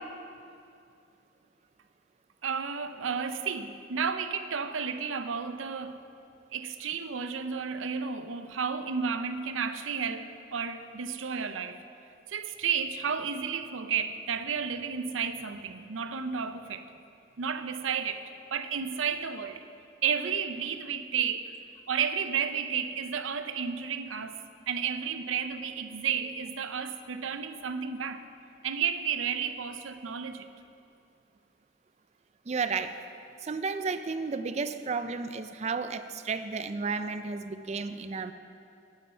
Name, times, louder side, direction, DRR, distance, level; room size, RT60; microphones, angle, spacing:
voice 1, 2.4-6.0 6.5-11.8 12.3-16.9 17.4-19.6 20.0-21.5 21.9-28.3 28.6-30.5, right 6 dB, 90° right, 0.6 m, -32 dB
voice 2, 32.5-33.0 33.4-38.3, right 4 dB, 35° right, 0.4 m, -32 dB
11.0 x 9.4 x 5.6 m
head